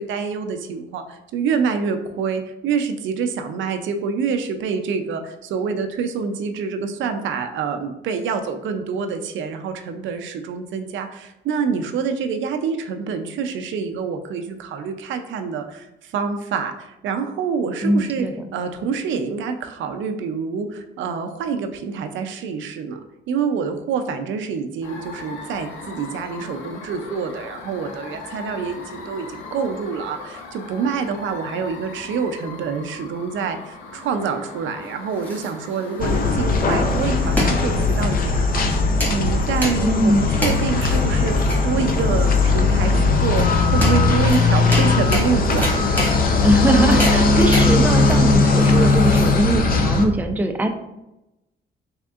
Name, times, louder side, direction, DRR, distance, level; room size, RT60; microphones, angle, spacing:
voice 1, 0.0-18.3 18.5-23.0 23.3-38.6 39.1-46.0, right 5 dB, 75° right, 7 dB, 0.4 m, -26 dB
voice 2, 17.8-18.3 39.8-40.3 46.4-50.7, right 1 dB, 10° right, 5 dB, 0.4 m, -21 dB
sound 1, 24.8-42.8, left 3 dB, 90° left, 0.6 m, -39 dB
sound 2, 34.8-49.7, left 1 dB, 10° left, 1.5 m, -30 dB
sound 3, 36.0-50.0, left 3 dB, 45° left, 0.5 m, -18 dB
3.5 x 3.5 x 2.3 m, 0.91 s
cardioid pair, 90°, 20 cm